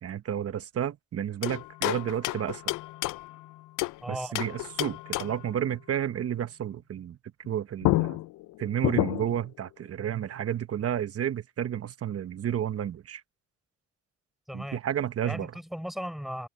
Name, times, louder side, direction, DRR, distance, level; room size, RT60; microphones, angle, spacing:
voice 1, 0.0-2.7 4.1-7.2 7.5-8.2 8.6-13.2 14.5-15.5, right 10 dB, 50° right, 1.0 m, -31 dB
sound 1, 1.4-4.0 4.3-5.5 7.4-7.5 7.8-9.5, left 19 dB, 90° left, 0.5 m, -30 dB
voice 2, 4.0-4.4 14.5-14.8 15.2-16.5, equal, ahead, 4.3 m, -36 dB
open air
cardioid pair, 90°, 30 cm